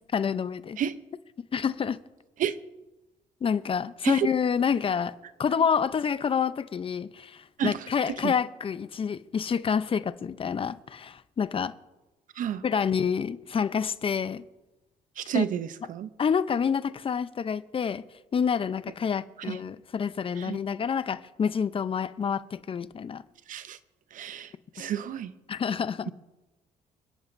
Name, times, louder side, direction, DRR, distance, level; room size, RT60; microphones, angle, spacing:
voice 1, 0.1-0.8 1.5-2.0 3.4-5.1 5.4-11.7 12.6-14.4 15.3-15.5 16.2-18.0 18.3-23.2 24.8-24.9 25.5-26.1, left 7 dB, 40° left, 0.6 m, -28 dB
voice 2, 15.2-16.1 19.5-19.6 20.4-20.6 23.5-23.8 24.1-25.3, right 9 dB, 65° right, 0.7 m, -30 dB
29.5 x 10.5 x 2.6 m
cardioid pair, 90°, 15 cm